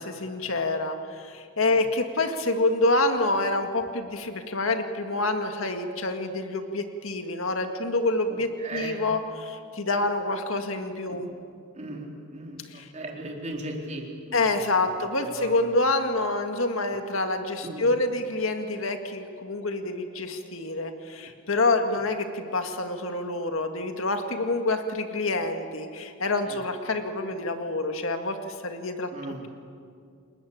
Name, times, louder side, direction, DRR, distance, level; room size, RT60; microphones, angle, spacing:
voice 1, 0.0-11.3 12.7-12.9 14.3-29.1, left 2 dB, 65° left, 6 dB, 2.0 m, -27 dB
voice 2, 8.3-9.0 11.1-11.3 11.7-14.6 14.9-15.0 15.2-15.7 16.9-17.0 17.6-17.9 21.9-22.0 26.5-26.6 29.1-29.4, right 1 dB, 35° right, 1 dB, 4.0 m, -38 dB
30.0 x 20.5 x 8.8 m, 2.4 s
head